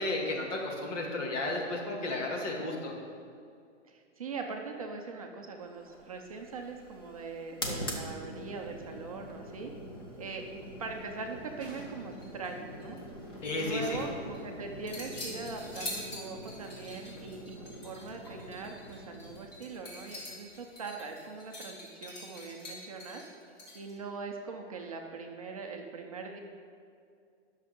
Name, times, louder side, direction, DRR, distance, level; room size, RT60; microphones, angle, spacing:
voice 1, 0.0-2.9 13.4-14.0, left 2 dB, 75° left, -1 dB, 2.3 m, -33 dB
voice 2, 3.9-9.7 10.2-10.4 10.8-13.0 13.5-23.2 23.7-26.4, right 4 dB, 30° right, 2 dB, 0.5 m, -41 dB
sound 1, 5.8-21.1, equal, 20° left, 0.4 m, -44 dB
sound 2, 11.6-12.5 12.8-14.4 14.9-23.9, left 1 dB, 35° left, 2.2 m, -45 dB
10.0 x 6.4 x 5.2 m, 2.3 s
hypercardioid pair, 175°, 37 cm